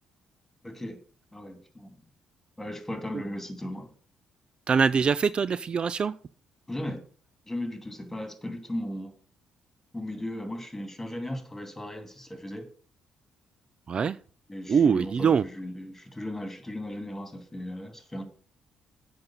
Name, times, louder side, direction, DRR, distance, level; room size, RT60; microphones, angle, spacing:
voice 1, 0.6-1.0 1.3-2.0 2.6-3.9 6.7-7.0 7.5-9.1 9.9-12.7 14.5-18.2, left 1 dB, 10° left, 2.5 m, -36 dB
voice 2, 4.7-6.1 13.9-14.2 14.7-15.4, right 6 dB, 45° right, 0.3 m, -23 dB
7.9 x 5.3 x 7.2 m
hypercardioid pair, 45°, 2 cm